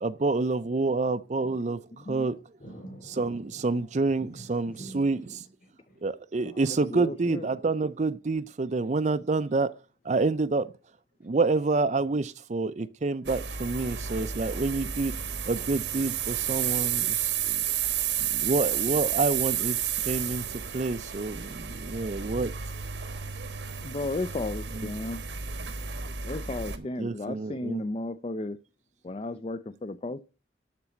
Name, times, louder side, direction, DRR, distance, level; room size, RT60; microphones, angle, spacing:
voice 1, 0.0-2.4 3.0-5.4 6.0-9.7 10.0-10.7 11.2-15.1 15.5-17.6 18.2-19.8 20.1-22.5 24.7-24.9 26.4-27.8, right 3 dB, 40° right, 0.5 m, -28 dB
voice 2, 2.6-5.3 5.6-6.1 29.1-29.2, right 1 dB, 50° left, 4.5 m, -49 dB
voice 3, 6.7-7.5 23.8-25.2 26.2-28.6 29.0-30.2, left 2 dB, 30° left, 0.4 m, -34 dB
sound 1, 13.2-26.8, right 9 dB, 80° right, 1.3 m, -31 dB
12.0 x 4.2 x 6.9 m
head